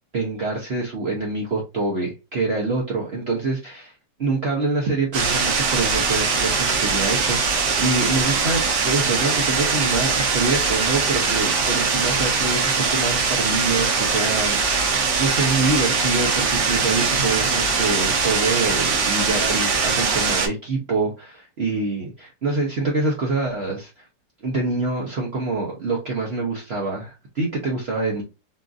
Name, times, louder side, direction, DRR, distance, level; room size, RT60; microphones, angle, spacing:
voice 1, 0.1-3.9 4.2-24.1 24.4-28.2, right 3 dB, 55° right, 0.7 m, -25 dB
sound 1, 5.1-20.5, right 4 dB, 80° right, 1.4 m, -21 dB
3.8 x 2.4 x 2.4 m
omnidirectional pair, 1.9 m